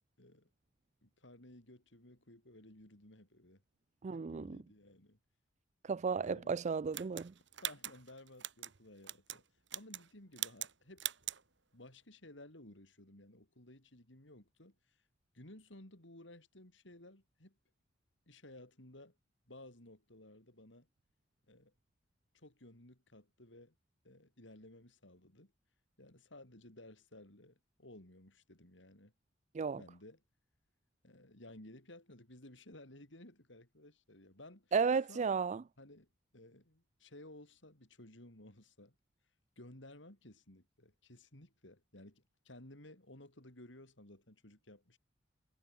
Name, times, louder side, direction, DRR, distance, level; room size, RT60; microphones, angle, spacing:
voice 1, 0.2-0.5 1.0-3.6 4.1-5.2 6.2-6.7 7.6-9.5 9.7-11.1 11.7-15.0 15.3-17.6 18.3-19.2 19.5-20.9 21.5-21.7 22.3-23.7 24.0-25.5 26.0-29.1 29.8-30.2 31.0-34.7 35.1-35.3 35.8-36.1 36.3-39.0 39.6-45.0, left 1 dB, 70° left, 5.3 m, -56 dB
voice 2, 4.0-4.6 5.8-7.3 29.5-29.8 34.7-35.6, right 5 dB, 40° right, 0.4 m, -33 dB
sound 1, 6.9-8.7 9.0-9.4 9.7-10.1 10.4-10.7 11.0-11.4, right 13 dB, 70° right, 5.1 m, -41 dB
head